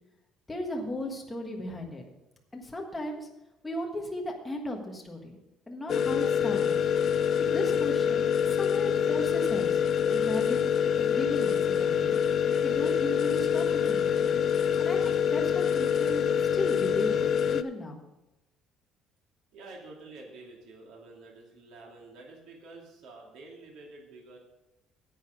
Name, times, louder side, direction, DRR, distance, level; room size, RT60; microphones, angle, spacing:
voice 1, 0.5-2.0 2.5-3.3 3.6-5.4 5.7-6.8 7.4-12.2 12.6-14.3 14.8-17.2 17.5-18.0, left 1 dB, 10° left, 1 dB, 1.4 m, -36 dB
sound 1, 5.9-17.6, left 8 dB, 40° left, 0.4 m, -26 dB
voice 2, 19.5-24.4, right 3 dB, 70° right, -1 dB, 2.6 m, -48 dB
10.5 x 8.2 x 5.0 m, 0.94 s
cardioid pair, 180°, 0 cm